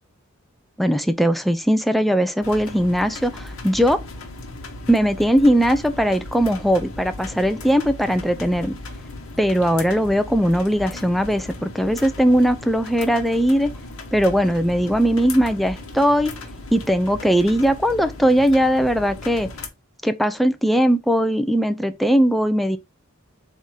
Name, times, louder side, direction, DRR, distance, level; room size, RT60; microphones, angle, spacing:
voice 1, 0.8-4.0 4.9-8.7 9.4-13.7 14.1-16.3 16.7-19.5 20.0-22.8, equal, ahead, 0.3 m, -19 dB
sound 1, 2.4-19.7, left 2 dB, 75° left, 1.1 m, -37 dB
3.7 x 2.7 x 4.7 m
head